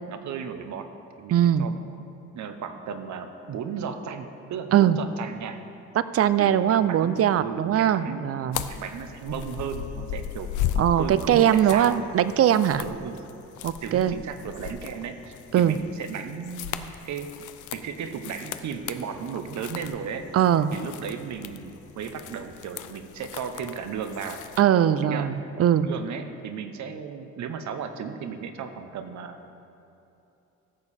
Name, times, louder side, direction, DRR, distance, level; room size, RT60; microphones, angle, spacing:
voice 1, 0.1-1.8 2.3-5.6 6.4-8.4 8.7-10.5 11.0-12.1 12.8-13.2 13.8-17.3 17.7-20.3 20.7-24.4 25.0-25.3 25.8-29.5, right 6 dB, 70° right, 8 dB, 0.9 m, -35 dB
voice 2, 1.3-1.7 4.7-5.0 6.0-8.6 10.8-12.8 13.6-14.1 15.5-15.8 20.3-20.7 24.6-25.9, right 10 dB, 50° right, 14 dB, 0.5 m, -21 dB
sound 1, 8.5-24.6, left 10 dB, 80° left, 0.6 m, -37 dB
14.5 x 6.9 x 4.3 m, 2.9 s
cardioid pair, 90°, 30 cm